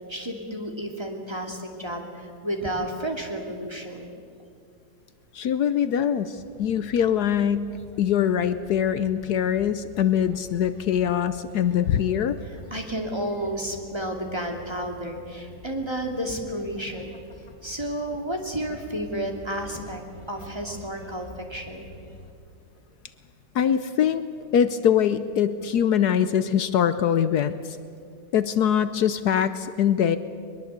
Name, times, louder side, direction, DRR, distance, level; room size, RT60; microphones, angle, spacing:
voice 1, 0.1-4.1 12.4-17.2 17.6-20.0 20.3-21.8, right 1 dB, 15° right, 2 dB, 2.6 m, -31 dB
voice 2, 5.3-7.7 8.0-12.4 23.5-24.2 24.5-27.8 28.3-30.2, left 9 dB, 70° left, 12 dB, 1.2 m, -23 dB
sound 1, 6.3-22.3, left 1 dB, 20° left, 1.7 m, -47 dB
22.0 x 21.5 x 8.1 m, 2.3 s
omnidirectional pair, 1.8 m